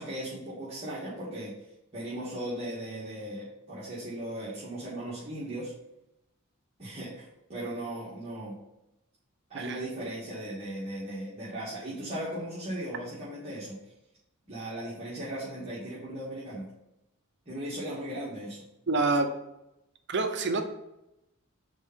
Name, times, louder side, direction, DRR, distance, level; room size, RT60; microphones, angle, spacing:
voice 1, 0.0-1.6 1.9-5.7 6.8-8.6 9.5-13.8 14.5-16.7 17.5-18.6, right 1 dB, 30° right, -11 dB, 1.8 m, -37 dB
voice 2, 18.9-19.3 20.1-20.6, right 3 dB, 55° right, 6 dB, 0.7 m, -27 dB
5.3 x 4.4 x 5.5 m, 0.89 s
head